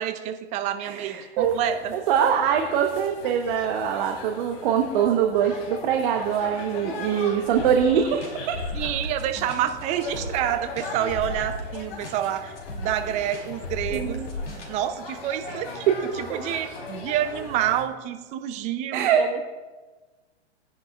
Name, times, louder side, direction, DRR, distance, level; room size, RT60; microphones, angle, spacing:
voice 1, 0.0-2.0 8.7-14.2 14.7-15.8 16.2-19.4, right 11 dB, 20° right, 9 dB, 0.5 m, -28 dB
voice 2, 0.8-1.6 1.9-8.6 13.9-14.3 15.9-16.0 16.3-16.4 18.9-19.3, right 8 dB, 45° right, 3 dB, 1.0 m, -23 dB
sound 1, 1.4-17.8, left 3 dB, 55° left, 3.2 m, -39 dB
sound 2, 7.4-14.7, left 2 dB, 90° left, 2.9 m, -35 dB
18.5 x 10.0 x 2.4 m, 1.3 s
hypercardioid pair, 125°, 34 cm